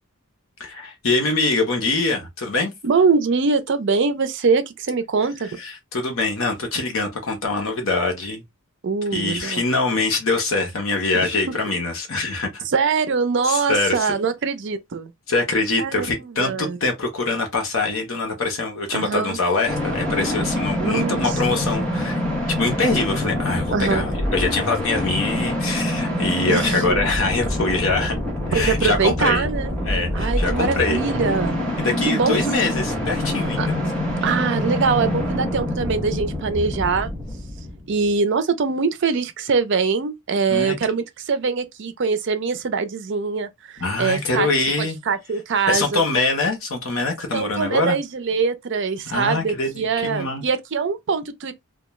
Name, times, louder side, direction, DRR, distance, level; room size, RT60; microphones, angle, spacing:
voice 1, 0.6-2.7 5.6-8.4 9.1-12.6 13.4-14.1 15.3-22.2 22.6-28.1 28.5-29.5 29.9-31.0 31.8-33.8 40.5-40.8 43.8-45.0 45.7-48.0 49.1-50.4, left 3 dB, 70° left, 0.9 m, -23 dB
voice 2, 2.8-5.5 8.8-9.6 11.1-11.3 12.7-15.1 15.8-16.8 18.9-19.4 20.8-21.3 23.7-24.0 26.5-27.0 28.5-29.7 30.1-31.6 32.1-32.4 33.6-33.7 34.2-37.1 37.9-43.5 44.0-44.5 44.8-46.0 47.3-51.5, right 5 dB, 55° right, 0.5 m, -23 dB
sound 1, 19.7-38.2, left 1 dB, 5° left, 0.8 m, -25 dB
2.3 x 2.2 x 3.0 m
head